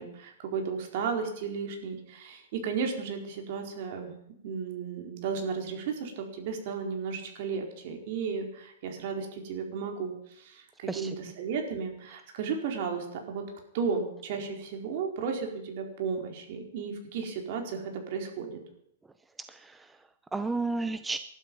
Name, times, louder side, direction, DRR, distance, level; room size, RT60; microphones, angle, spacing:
voice 1, 0.0-4.1 4.4-13.4 13.7-18.6, right 5 dB, 55° right, 3 dB, 4.5 m, -34 dB
voice 2, 19.5-21.2, right 3 dB, 10° right, 10 dB, 0.8 m, -33 dB
19.5 x 12.0 x 5.5 m, 0.73 s
hypercardioid pair, 125°, 0 cm